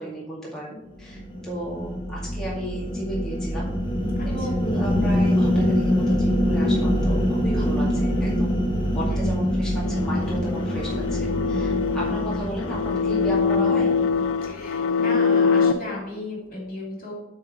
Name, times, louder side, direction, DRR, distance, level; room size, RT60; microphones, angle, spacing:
voice 1, 0.0-3.7 4.3-13.9, right 1 dB, 5° left, -7 dB, 2.2 m, -34 dB
sound 1, 1.0-14.5, equal, 25° left, 1.1 m, -24 dB
voice 2, 4.1-4.6 9.1-9.4 14.5-17.1, left 2 dB, 45° left, -2 dB, 2.8 m, -35 dB
sound 2, 9.8-15.7, left 5 dB, 80° left, 0.5 m, -23 dB
8.9 x 4.0 x 6.2 m, 0.88 s
head